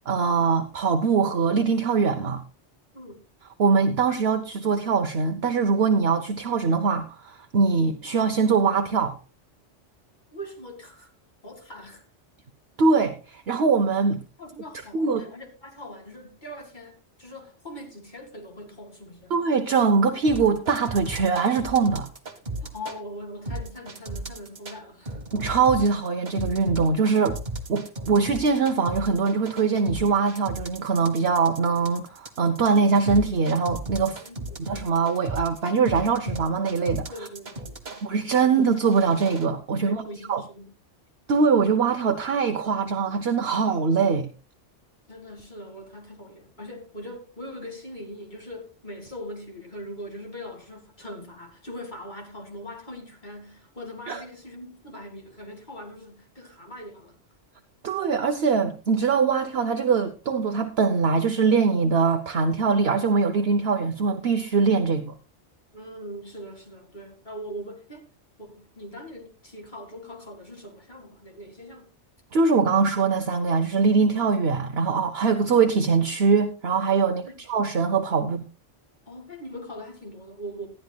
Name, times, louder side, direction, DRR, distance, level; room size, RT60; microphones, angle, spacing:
voice 1, 0.1-2.4 3.6-9.1 12.8-14.2 14.9-15.2 19.3-22.1 25.3-27.4 27.7-34.2 34.6-37.1 38.0-40.0 40.3-40.4 41.3-44.3 54.1-54.2 57.8-65.1 72.3-77.2 77.5-78.4, right 5 dB, 60° right, 1.1 m, -22 dB
voice 2, 10.3-11.1 11.4-12.1 14.4-19.4 22.6-25.2 34.2-34.7 37.1-38.1 38.4-38.5 39.7-40.7 45.1-57.2 65.7-68.1 68.4-71.9 77.0-77.4 78.2-78.4 79.1-80.7, equal, 40° left, 2.4 m, -41 dB
sound 1, 20.3-23.0 23.5-24.8 25.1-38.0 38.6-39.5, right 1 dB, 40° right, 1.5 m, -35 dB
19.0 x 12.0 x 2.3 m
omnidirectional pair, 1.2 m